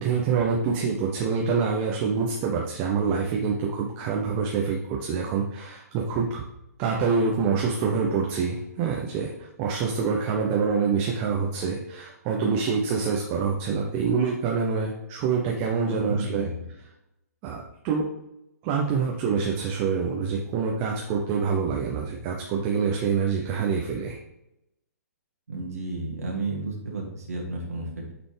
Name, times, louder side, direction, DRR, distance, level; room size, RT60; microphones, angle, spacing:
voice 1, 0.0-6.4 6.8-16.5 17.4-18.1 18.6-24.2, right 5 dB, 25° right, 0 dB, 0.8 m, -26 dB
voice 2, 15.9-16.7 25.5-28.1, right 2 dB, 65° right, -1 dB, 1.6 m, -32 dB
8.7 x 4.0 x 3.4 m, 0.88 s
figure-of-eight pair, 120°, 9 cm